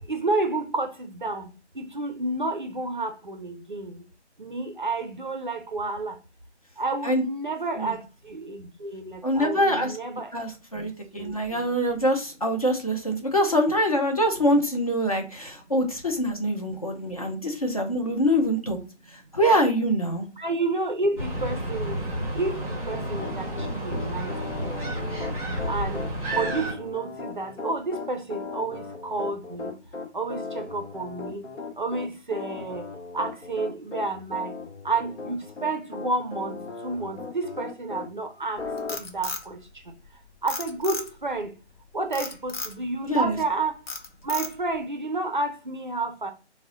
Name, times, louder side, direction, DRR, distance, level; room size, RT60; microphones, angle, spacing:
voice 1, 0.1-1.5 1.8-4.0 4.4-6.2 6.8-8.0 8.3-10.3 11.2-11.7 20.4-22.0 22.3-24.3 24.6-25.1 25.7-26.0 26.4-29.7 30.1-31.4 31.8-32.9 33.1-34.5 34.8-36.6 36.8-38.6 39.0-39.6 40.4-41.5 41.9-43.7 44.2-46.3, right 3 dB, 45° right, 0.4 m, -30 dB
voice 2, 9.2-10.0 10.3-18.8 19.1-20.3 43.0-43.4, equal, 35° left, 0.5 m, -24 dB
sound 1, 21.2-26.7, right 1 dB, 5° right, 0.9 m, -31 dB
Piano, 22.9-38.1 38.6-39.0, left 4 dB, 80° left, 1.0 m, -37 dB
Frog, 38.6-40.1 40.5-41.4 42.1-42.8 43.3-43.5 43.9-44.8, left 3 dB, 55° left, 0.9 m, -34 dB
3.4 x 2.1 x 3.7 m
figure-of-eight pair, 160°, 35 cm